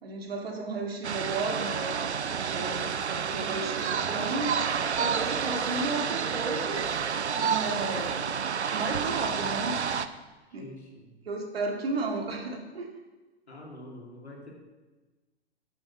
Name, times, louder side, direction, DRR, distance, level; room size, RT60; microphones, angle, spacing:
voice 1, 0.0-4.5 5.0-6.9 7.4-8.2 8.7-9.8 10.5-10.7 11.3-12.9, right 3 dB, 60° right, 3 dB, 2.0 m, -33 dB
sound 1, 1.0-10.1, right 7 dB, 75° right, 0.7 m, -29 dB
voice 2, 10.6-11.1 13.5-14.5, left 1 dB, 75° left, -1 dB, 2.7 m, -45 dB
8.7 x 7.5 x 5.9 m, 1.2 s
figure-of-eight pair, 110°, 33 cm